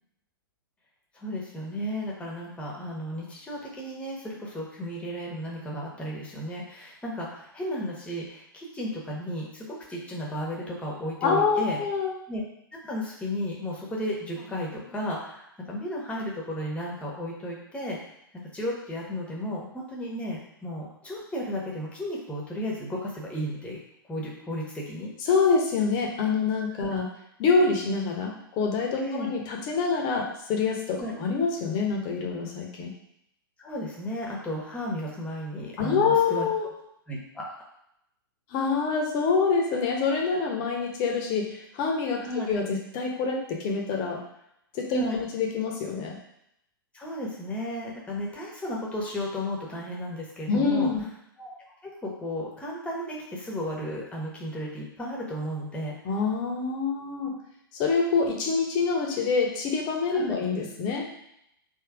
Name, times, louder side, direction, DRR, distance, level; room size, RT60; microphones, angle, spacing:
voice 1, 1.1-11.8 12.3-12.4 12.7-18.0 18.5-23.8 24.1-25.1 26.7-27.0 29.0-29.3 31.0-31.2 33.6-36.4 37.1-37.5 42.2-42.5 44.9-45.2 46.9-50.9 51.4-51.5 51.8-55.9 60.1-60.4, equal, 10° left, -3 dB, 1.2 m, -34 dB
voice 2, 11.2-12.1 25.2-27.1 27.4-32.9 35.8-36.7 38.5-44.2 44.7-46.2 50.5-51.0 56.0-57.3 57.7-61.1, left 4 dB, 35° left, 0 dB, 1.1 m, -26 dB
3.6 x 3.1 x 4.7 m, 0.77 s
figure-of-eight pair, 110°, 12 cm